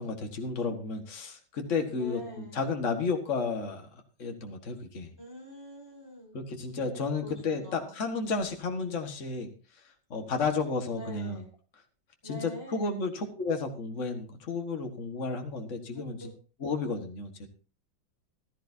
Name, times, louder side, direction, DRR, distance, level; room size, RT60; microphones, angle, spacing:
voice 1, 0.0-3.9 4.2-5.1 6.3-9.5 10.1-11.4 12.2-16.3 16.6-17.5, left 4 dB, 40° left, 4 dB, 1.9 m, -32 dB
voice 2, 1.9-2.6 5.2-6.4 6.7-7.9 10.9-11.5 12.2-13.0 15.9-16.4, right 1 dB, 10° left, -1 dB, 6.2 m, -45 dB
15.5 x 13.0 x 2.8 m, 0.35 s
omnidirectional pair, 2.1 m